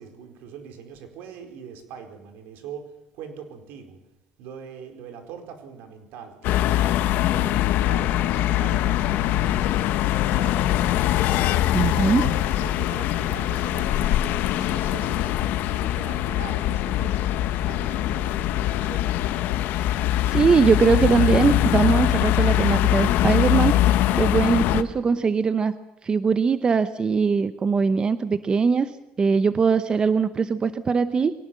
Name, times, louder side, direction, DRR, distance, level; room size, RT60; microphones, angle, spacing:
voice 1, 0.0-4.0 4.4-10.6 11.4-15.3 15.7-19.2, right 7 dB, 75° right, 6 dB, 4.5 m, -42 dB
sound 1, 6.4-24.8, left 13 dB, 70° left, 1.2 m, -22 dB
voice 2, 11.7-12.3 20.0-23.8 24.1-25.7 26.0-28.9 29.2-31.3, right 5 dB, 25° right, 12 dB, 0.9 m, -21 dB
23.0 x 18.5 x 7.7 m, 0.86 s
cardioid pair, 130°, 3 cm